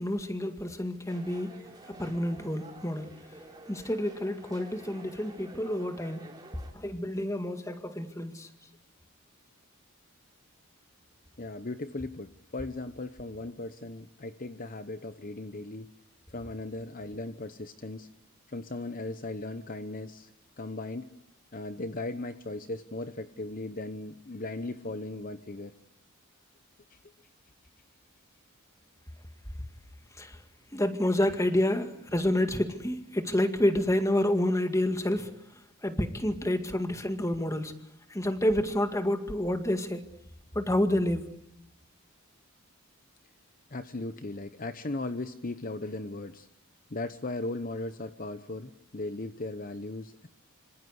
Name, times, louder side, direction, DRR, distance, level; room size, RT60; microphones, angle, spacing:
voice 1, 0.0-1.6 1.9-3.1 3.7-6.3 6.7-8.5 30.2-30.4 30.7-35.3 35.8-37.7 38.1-40.0 40.5-41.3, left 1 dB, 15° left, 2.0 m, -29 dB
sound 1, 1.1-6.7, right 2 dB, 20° right, 3.8 m, -50 dB
voice 2, 11.4-15.9 16.3-18.1 18.5-20.3 20.6-21.1 21.5-25.7 26.9-27.0 43.7-46.5 46.9-50.3, left 2 dB, 40° left, 1.0 m, -37 dB
26.0 x 26.0 x 8.2 m
head